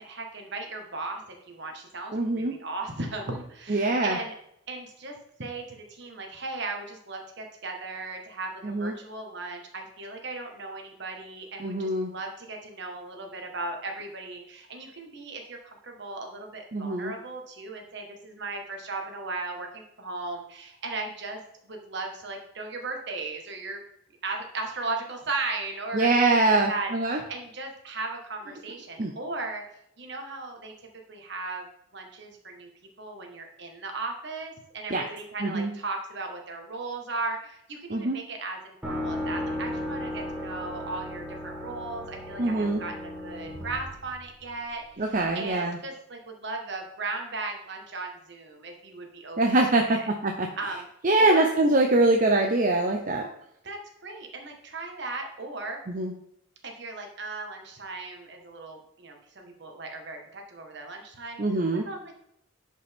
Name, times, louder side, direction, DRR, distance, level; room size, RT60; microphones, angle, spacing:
voice 1, 0.0-4.3 4.7-23.8 24.2-29.6 30.0-30.7 31.1-31.7 31.9-32.7 33.0-49.4 49.7-50.1 50.5-50.9 51.2-51.6 53.2-53.3 53.6-55.8 56.6-62.1, right 3 dB, 60° right, 3 dB, 1.6 m, -37 dB
voice 2, 2.1-2.5 3.7-4.2 8.6-8.9 11.6-12.1 16.7-17.1 25.9-27.2 29.0-29.1 34.9-35.0 35.4-35.7 37.9-38.2 42.4-42.8 45.0-45.8 49.4-50.5 51.0-53.2 55.9-56.1 61.4-61.8, right 2 dB, 40° right, 2 dB, 0.7 m, -23 dB
sound 1, 38.8-44.7, left 1 dB, 5° right, 1.7 m, -35 dB
10.5 x 5.3 x 3.6 m, 0.75 s
head